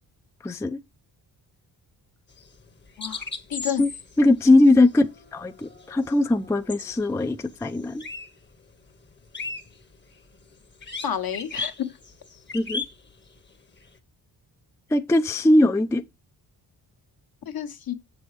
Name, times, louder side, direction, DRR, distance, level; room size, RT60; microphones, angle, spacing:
voice 1, 0.4-0.8 3.8-3.9 4.2-5.1 5.3-8.0 12.5-12.8 14.9-16.0, left 2 dB, 5° left, 0.4 m, -20 dB
sound 1, 2.3-8.4 8.7-14.0, left 3 dB, 25° left, 1.0 m, -37 dB
voice 2, 3.0-3.8 11.0-12.0 17.4-17.9, left 9 dB, 60° left, 1.1 m, -30 dB
7.0 x 6.1 x 3.1 m
cardioid pair, 90°, 41 cm